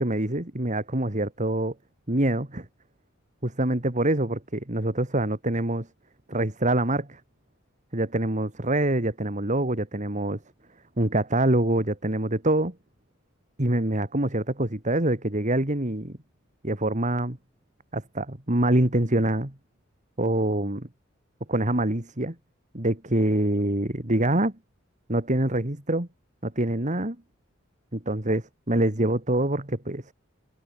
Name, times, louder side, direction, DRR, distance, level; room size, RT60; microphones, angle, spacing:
voice 1, 0.0-1.7 2.1-2.7 3.4-5.9 6.3-7.2 7.9-10.4 11.0-12.7 13.6-16.2 16.6-17.4 17.9-19.5 20.2-20.9 21.5-22.3 22.7-24.5 25.1-26.1 26.4-27.2 27.9-30.0, right 1 dB, 40° right, 2.7 m, -25 dB
head